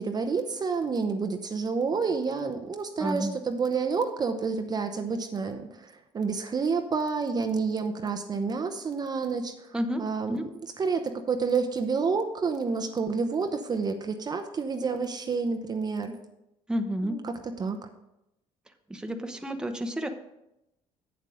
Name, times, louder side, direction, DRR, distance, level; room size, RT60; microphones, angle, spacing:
voice 1, 0.0-9.7 10.0-10.4 10.8-16.1 17.0-17.9, right 5 dB, 35° right, 6 dB, 0.8 m, -29 dB
voice 2, 3.0-3.4 9.7-10.0 10.3-10.4 16.7-17.2 18.9-20.1, equal, 5° right, 6 dB, 0.9 m, -30 dB
8.2 x 7.6 x 5.0 m, 0.89 s
supercardioid pair, 95°, 12 cm